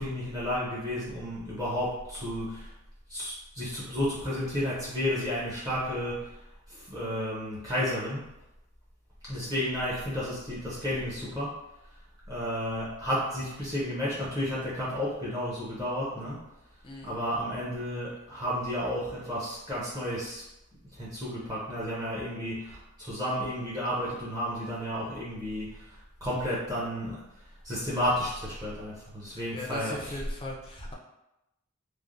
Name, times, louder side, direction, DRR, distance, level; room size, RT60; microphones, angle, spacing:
voice 1, 0.0-2.7 3.1-6.3 6.7-8.3 9.2-11.6 12.3-16.4 17.0-20.4 20.9-27.2 27.6-30.2, equal, 15° right, -8 dB, 0.6 m, -32 dB
voice 2, 16.8-17.2 29.3-30.9, left 1 dB, 25° left, 0 dB, 0.4 m, -39 dB
3.2 x 2.0 x 2.5 m, 0.91 s
head